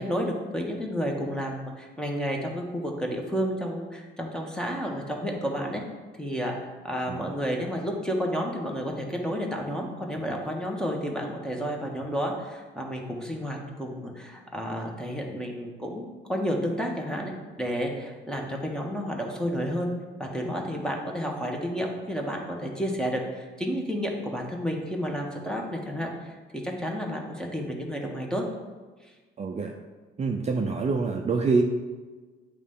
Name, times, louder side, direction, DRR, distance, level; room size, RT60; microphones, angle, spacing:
voice 1, 0.0-5.8 6.2-6.5 6.8-19.9 20.2-28.4, equal, 5° left, 0 dB, 1.4 m, -31 dB
voice 2, 29.4-29.7 30.2-31.6, right 4 dB, 35° right, 2 dB, 0.7 m, -26 dB
8.3 x 3.4 x 5.5 m, 1.3 s
cardioid pair, 90°, 20 cm